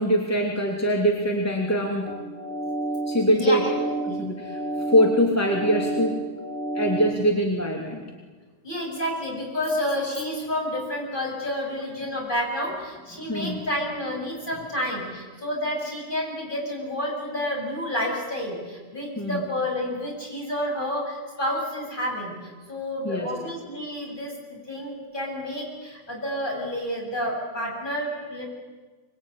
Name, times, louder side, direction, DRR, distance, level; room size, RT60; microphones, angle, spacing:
voice 1, 0.0-2.1 3.1-3.6 4.1-4.6 4.9-6.2 6.7-8.0 13.2-13.7 19.2-19.4 23.0-23.3, equal, 10° left, 0 dB, 2.9 m, -23 dB
sound 1, 2.0-7.1, right 2 dB, 45° right, 4.1 m, -30 dB
voice 2, 3.3-4.2 8.6-22.3 22.7-28.5, equal, 40° left, -1 dB, 8.0 m, -30 dB
25.5 x 21.5 x 10.0 m, 1.3 s
omnidirectional pair, 1.3 m